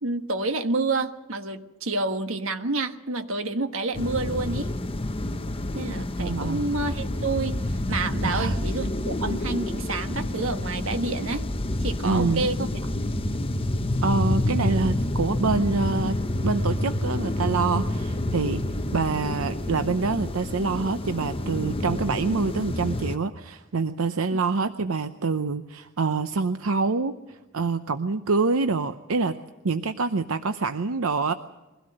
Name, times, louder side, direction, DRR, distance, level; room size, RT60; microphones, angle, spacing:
voice 1, 0.0-4.7 5.7-11.5 11.8-12.7 19.2-19.4 24.3-24.4, right 3 dB, 70° right, 8 dB, 1.4 m, -29 dB
sound 1, 3.9-23.2, left 1 dB, 25° left, 0.8 m, -28 dB
voice 2, 6.2-6.6 8.2-8.6 12.0-12.4 14.0-16.2 16.4-18.6 18.9-29.4 29.6-31.3, right 4 dB, 85° right, 9 dB, 0.8 m, -26 dB
22.5 x 16.5 x 7.8 m, 1.1 s
head